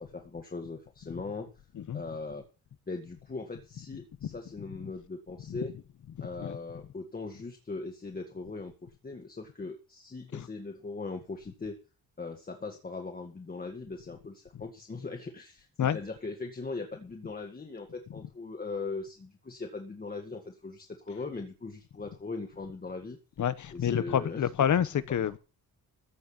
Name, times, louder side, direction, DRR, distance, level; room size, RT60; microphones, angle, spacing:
voice 1, 0.0-1.5 1.9-2.4 2.9-5.7 6.2-8.7 9.0-11.8 12.2-23.2 23.7-24.4 25.2-25.4, left 3 dB, 25° left, 2.0 m, -40 dB
voice 2, 6.2-6.6 10.3-10.5 15.8-16.0 23.4-25.4, left 9 dB, 55° left, 1.1 m, -28 dB
15.0 x 6.3 x 8.3 m
wide cardioid pair, 160°, 36 cm